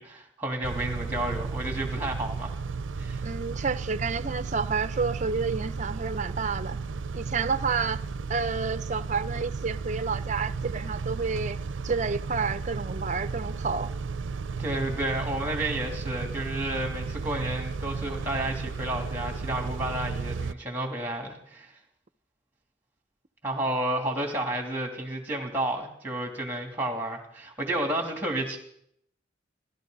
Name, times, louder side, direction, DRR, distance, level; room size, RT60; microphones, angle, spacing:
voice 1, 0.0-2.5 3.0-3.2 14.6-21.7 23.4-28.6, right 1 dB, 10° right, 3.0 m, -31 dB
Car / Idling / Accelerating revving vroom, 0.6-20.5, right 4 dB, 80° right, 0.5 m, -34 dB
voice 2, 3.2-6.8 7.1-8.0 8.3-11.6 11.8-13.9, right 5 dB, 40° right, 0.6 m, -30 dB
29.0 x 12.5 x 4.0 m
head